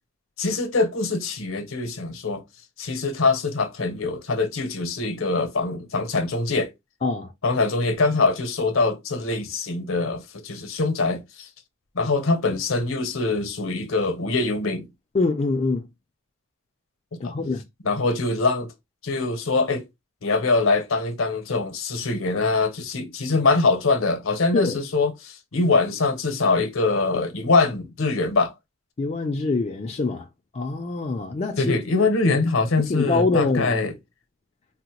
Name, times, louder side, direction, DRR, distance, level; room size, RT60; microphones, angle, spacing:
voice 1, 0.4-2.4 2.8-6.7 7.4-11.5 11.9-14.9 17.2-17.3 17.8-18.7 19.0-19.8 20.2-28.5 31.6-33.9, left 3 dB, 70° left, 0.8 m, -23 dB
voice 2, 15.1-15.9 17.2-17.6 24.5-24.8 29.0-30.3 30.5-31.8 32.9-33.8, left 3 dB, 30° left, 0.4 m, -24 dB
3.7 x 2.1 x 2.9 m
head